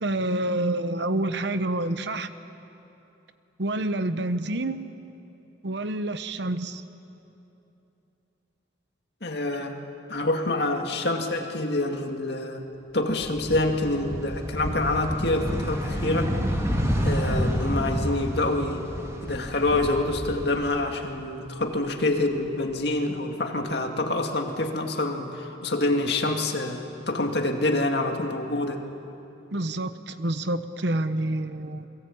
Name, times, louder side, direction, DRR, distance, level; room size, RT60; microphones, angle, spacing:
voice 1, 0.0-2.3 3.6-4.8 5.6-6.8 29.5-31.9, right 1 dB, 60° right, 11 dB, 1.0 m, -28 dB
voice 2, 9.2-9.8 10.1-12.7 12.9-16.3 17.0-18.8 19.2-28.8, left 2 dB, 55° left, 3 dB, 2.2 m, -26 dB
sound 1, 13.1-21.2 21.6-22.7, equal, 15° right, 2.7 m, -29 dB
28.5 x 22.0 x 8.6 m, 2.9 s
head